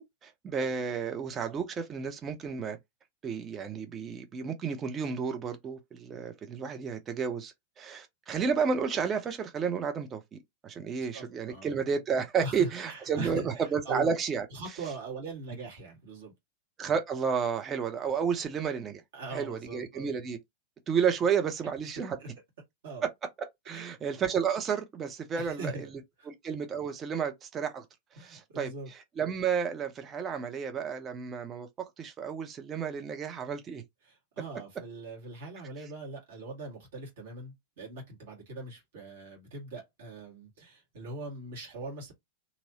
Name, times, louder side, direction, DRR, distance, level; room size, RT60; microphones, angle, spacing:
voice 1, 0.0-2.8 3.2-10.4 10.6-14.4 16.8-19.0 19.3-20.4 20.9-22.2 23.7-25.9 26.3-27.8 28.2-28.7 29.2-33.8, right 6 dB, 25° right, 0.7 m, -31 dB
voice 2, 11.1-11.7 12.4-14.1 14.5-16.3 19.1-20.1 22.2-22.3 22.8-23.0 23.7-23.9 25.3-26.3 28.2-28.9 34.0-42.1, right 2 dB, 55° right, 1.6 m, -41 dB
2.9 x 2.6 x 2.8 m
figure-of-eight pair, 90°, 0 cm